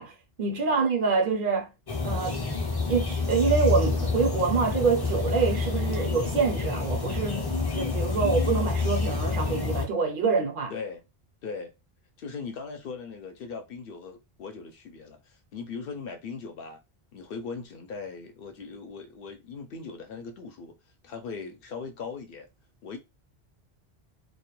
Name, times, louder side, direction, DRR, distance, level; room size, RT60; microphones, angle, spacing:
voice 1, 0.0-1.7 2.0-2.4 2.9-10.7, right 5 dB, 65° right, 0.6 m, -26 dB
voice 2, 0.5-0.8 10.7-11.0 11.4-11.7 12.2-16.8 17.1-20.8 21.0-22.5 22.8-23.0, left 5 dB, 65° left, 0.7 m, -39 dB
sound 1, 1.9-9.9, left 4 dB, 30° left, 0.5 m, -28 dB
2.2 x 2.1 x 2.9 m
omnidirectional pair, 1.0 m